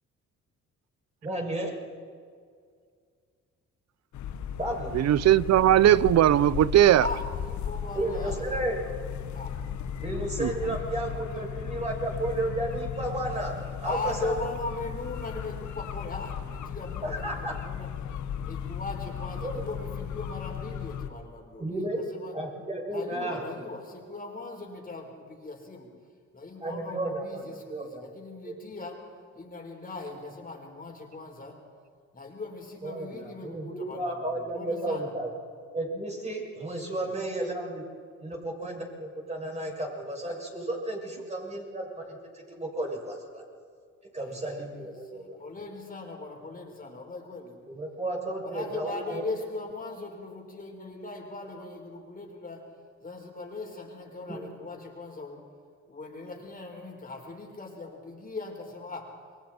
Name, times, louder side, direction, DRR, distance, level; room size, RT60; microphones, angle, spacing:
voice 1, 1.2-1.7 4.6-4.9 8.0-8.8 10.0-14.3 17.0-17.5 19.4-19.6 21.6-22.0 22.3-23.4 26.6-28.0 28.4-28.5 32.8-35.3 35.7-37.8 38.2-43.4 44.1-45.4 47.7-49.2 54.3-54.4, right 1 dB, 20° right, 7.1 m, -33 dB
sound 1, 4.1-21.1, left 8 dB, 70° left, 1.3 m, -36 dB
voice 2, 4.9-7.0 10.4-10.5, right 12 dB, 60° right, 0.7 m, -19 dB
voice 3, 7.0-8.4 9.3-9.6 13.8-17.9 18.4-22.4 22.9-25.9 26.3-31.6 32.1-35.1 37.0-37.1 44.2-47.6 48.4-52.7 53.0-55.4 55.9-59.2, left 3 dB, 30° left, 4.8 m, -39 dB
29.0 x 23.0 x 4.5 m
cardioid pair, 90°, 30 cm